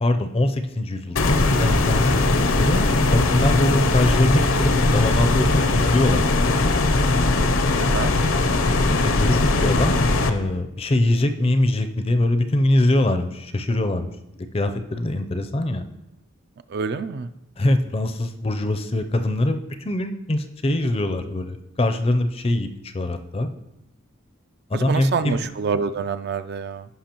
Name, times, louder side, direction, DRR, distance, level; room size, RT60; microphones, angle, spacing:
voice 1, 0.0-2.2 2.5-6.2 9.0-10.0 10.3-14.1 14.5-15.9 17.6-23.5 24.7-25.5, left 1 dB, 25° left, 8 dB, 0.4 m, -23 dB
sound 1, 1.2-10.3, left 2 dB, 65° left, 0.6 m, -20 dB
voice 2, 7.8-8.1 16.7-17.3 24.7-26.9, right 5 dB, 45° right, 10 dB, 0.3 m, -26 dB
15.5 x 5.5 x 2.9 m, 0.89 s
head